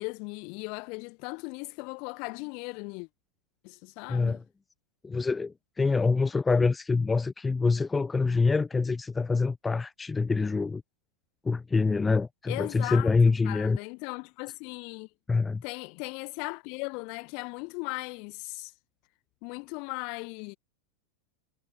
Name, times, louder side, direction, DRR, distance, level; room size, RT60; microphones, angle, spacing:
voice 1, 0.0-3.1 3.6-4.4 12.5-13.2 13.4-15.1 15.6-18.7 19.4-20.5, left 34 dB, 45° left, 1.5 m, -38 dB
voice 2, 4.1-4.4 5.0-10.8 11.4-13.8 15.3-15.6, left 4 dB, 10° left, 0.8 m, -25 dB
figure-of-eight pair, 90°, 0 cm